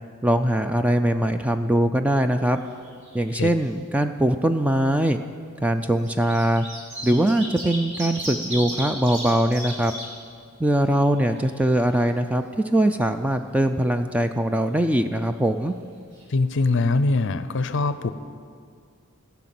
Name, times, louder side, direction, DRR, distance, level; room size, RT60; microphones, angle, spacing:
voice 1, 0.2-2.6 3.1-5.2 5.6-6.7 7.0-9.9 10.6-12.4 12.7-15.7, right 1 dB, 5° right, 7 dB, 0.3 m, -21 dB
sound 1, 2.6-3.3 3.6-3.7 4.8-4.9 5.8-10.1 10.5-10.6 10.9-11.9 15.8-15.9 16.1-16.2, right 1 dB, 55° right, 2.6 m, -35 dB
voice 2, 16.3-18.1, left 3 dB, 55° left, 12 dB, 0.5 m, -22 dB
16.5 x 5.8 x 7.6 m, 2.2 s
head